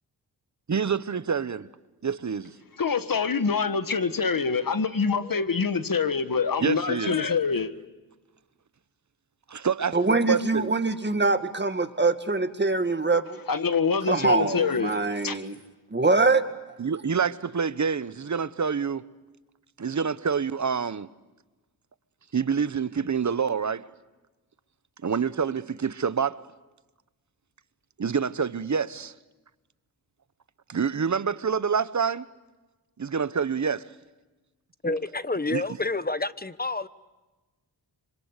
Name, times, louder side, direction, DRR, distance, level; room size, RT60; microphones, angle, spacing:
voice 1, 0.7-1.7 2.0-2.5 6.6-7.2 9.5-10.7 16.8-19.0 19.8-21.1 22.3-23.8 25.0-26.4 28.0-29.1 30.7-32.2 33.0-33.9 35.5-35.6, right 6 dB, 45° right, 1.0 m, -27 dB
voice 2, 2.8-7.7 13.5-15.0 15.2-15.4, left 5 dB, 55° left, 1.8 m, -25 dB
voice 3, 9.9-13.4 14.1-15.6 15.9-16.5, right 3 dB, 25° right, 2.0 m, -24 dB
voice 4, 34.8-36.9, left 2 dB, 20° left, 1.1 m, -29 dB
26.0 x 25.5 x 8.3 m
cardioid pair, 55°, 41 cm